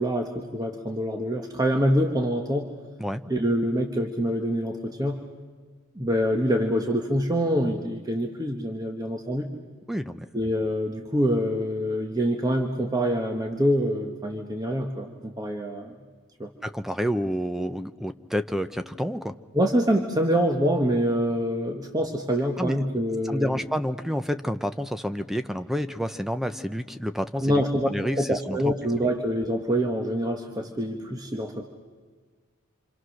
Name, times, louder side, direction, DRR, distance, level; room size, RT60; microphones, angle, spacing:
voice 1, 0.0-2.7 3.3-5.2 5.9-9.5 10.3-15.9 16.4-16.5 19.5-23.5 27.4-27.9 28.2-31.7, equal, 15° right, 3 dB, 1.2 m, -25 dB
voice 2, 9.9-10.3 16.6-19.3 22.6-22.8 23.3-28.7, equal, ahead, 10 dB, 0.6 m, -29 dB
27.5 x 26.5 x 6.4 m, 1.5 s
head